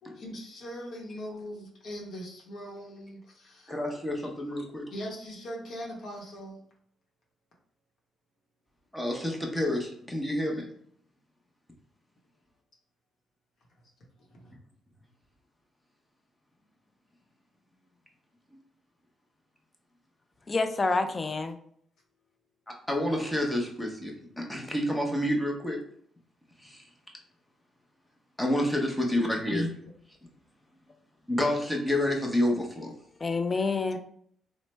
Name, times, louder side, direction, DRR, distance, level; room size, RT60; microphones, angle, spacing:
voice 1, 0.0-3.8 4.9-6.6 13.8-13.9 14.2-14.6, equal, 60° left, 0.9 m, -41 dB
voice 2, 3.7-4.8 8.9-10.7 22.7-25.8 26.6-26.8 28.4-29.8 31.3-32.9, left 1 dB, 10° left, 0.7 m, -29 dB
voice 3, 20.5-21.6 33.2-34.0, left 3 dB, 30° left, 0.3 m, -27 dB
3.1 x 2.0 x 3.1 m
cardioid pair, 90°, 0 cm